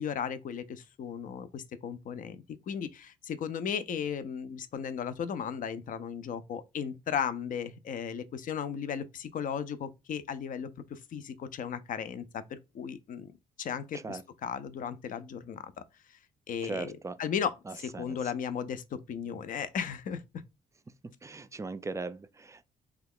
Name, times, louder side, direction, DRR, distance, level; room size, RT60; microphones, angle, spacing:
voice 1, 0.0-13.3 13.6-15.7 16.5-16.9 17.2-20.2, left 7 dB, 55° left, 0.5 m, -36 dB
voice 2, 16.6-17.2 17.7-18.2 21.0-22.7, right 3 dB, 20° right, 0.3 m, -39 dB
2.8 x 2.3 x 3.6 m
supercardioid pair, 65°, 17 cm